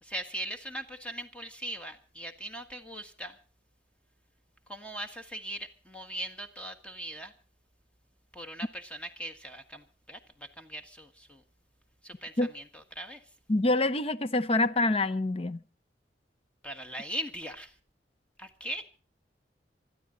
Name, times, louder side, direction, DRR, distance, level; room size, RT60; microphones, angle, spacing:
voice 1, 0.0-3.4 4.7-7.3 8.3-11.4 12.0-13.2 16.6-17.7 18.4-18.8, right 1 dB, 5° left, 1.5 m, -40 dB
voice 2, 13.5-15.6, left 2 dB, 35° left, 0.7 m, -26 dB
26.0 x 13.0 x 3.9 m
head